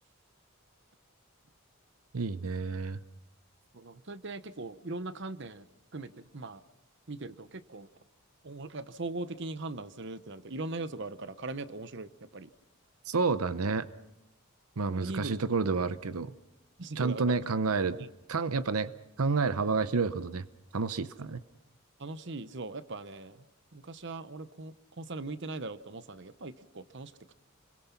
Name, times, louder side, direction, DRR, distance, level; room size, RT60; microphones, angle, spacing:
voice 1, 2.1-3.0 13.1-13.9 14.8-16.3 17.0-18.9 19.2-20.4 20.7-21.4, right 4 dB, 90° right, 14 dB, 0.8 m, -29 dB
voice 2, 3.7-5.7 5.9-6.6 7.1-7.9 8.4-12.5 14.9-15.3 16.8-17.3 18.0-18.1 22.0-23.4 23.7-27.3, right 2 dB, 55° right, 13 dB, 0.9 m, -40 dB
29.5 x 23.0 x 5.9 m, 0.92 s
head